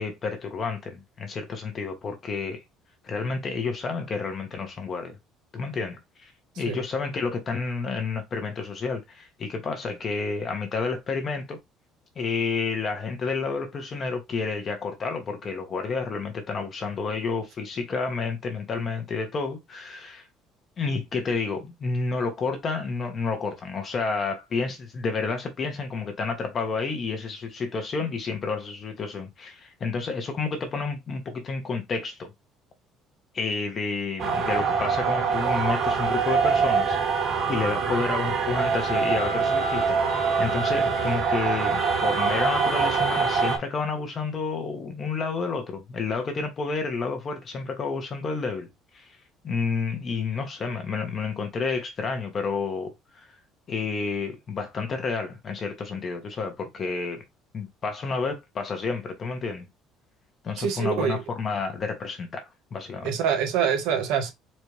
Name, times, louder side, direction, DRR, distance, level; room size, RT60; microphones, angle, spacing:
voice 1, 0.0-2.6 3.0-5.2 5.5-6.0 6.6-11.6 12.2-20.2 20.8-32.3 33.3-48.7 48.9-49.1 49.4-53.2 53.7-57.2 57.5-59.7 60.4-62.4 62.7-63.1, left 4 dB, 30° left, 1.1 m, -30 dB
sound 1, 34.2-43.6, right 5 dB, 40° right, 1.1 m, -24 dB
voice 2, 60.6-61.2 63.0-64.3, right 7 dB, 80° right, 1.2 m, -25 dB
4.3 x 3.2 x 3.2 m
cardioid pair, 165°, 0 cm